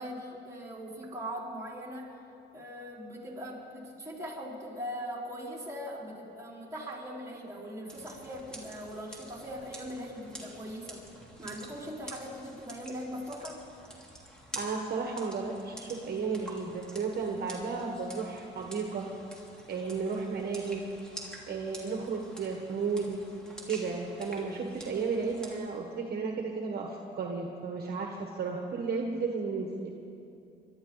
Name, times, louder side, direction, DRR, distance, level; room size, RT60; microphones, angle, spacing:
voice 1, 0.0-2.1 2.5-11.0 11.4-13.6, equal, 15° right, -4 dB, 4.4 m, -40 dB
sound 1, 7.9-25.6, right 1 dB, 5° left, 3.0 m, -48 dB
voice 2, 14.5-19.0 19.7-20.9 21.5-23.2 23.7-29.9, right 4 dB, 50° right, 1 dB, 1.4 m, -33 dB
24.0 x 12.0 x 4.0 m, 2.7 s
cardioid pair, 90°, 20 cm